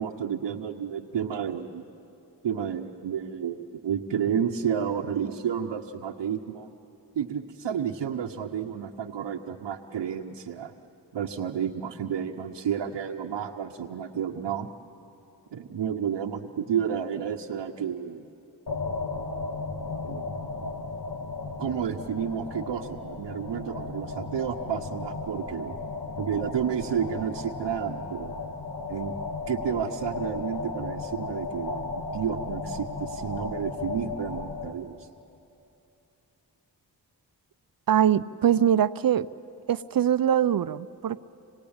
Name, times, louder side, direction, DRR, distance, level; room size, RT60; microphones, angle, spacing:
voice 1, 0.0-1.8 2.4-6.7 7.1-10.7 11.1-14.7 15.5-18.3 20.0-20.3 21.6-25.8 26.2-28.4 28.9-29.1 29.5-35.1, right 8 dB, 75° right, 1 dB, 0.9 m, -31 dB
sound 1, 18.7-34.7, left 3 dB, 60° left, 1.9 m, -35 dB
voice 2, 37.9-39.3 39.7-41.2, right 9 dB, 55° right, 16 dB, 0.6 m, -22 dB
27.0 x 18.0 x 8.8 m, 2.9 s
cardioid pair, 40°, 43 cm